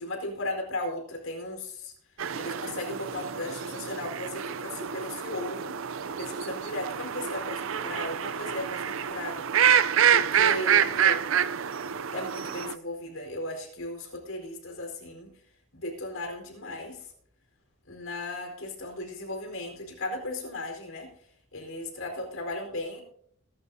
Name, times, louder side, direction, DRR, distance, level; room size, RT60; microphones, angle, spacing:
voice 1, 0.0-1.9 2.3-9.8 10.1-11.2 12.1-15.3 15.7-17.1 17.9-21.1 21.5-23.0, left 1 dB, 80° left, 3 dB, 4.3 m, -36 dB
sound 1, 2.2-12.7, right 8 dB, 75° right, 0.5 m, -27 dB
23.0 x 11.5 x 2.8 m, 0.65 s
head